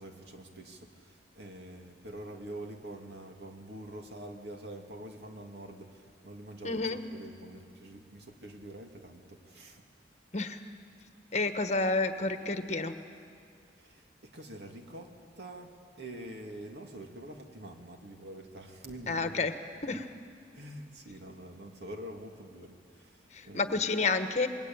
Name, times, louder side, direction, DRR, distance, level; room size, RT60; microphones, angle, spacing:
voice 1, 0.0-9.8 13.8-19.5 19.9-20.0 20.5-23.7, right 1 dB, 70° right, 3 dB, 2.6 m, -46 dB
voice 2, 6.6-7.0 10.3-10.6 11.3-12.9 19.1-19.5 19.8-20.1 23.3-24.5, left 3 dB, 40° left, 8 dB, 1.3 m, -30 dB
28.0 x 21.5 x 8.9 m, 2.3 s
head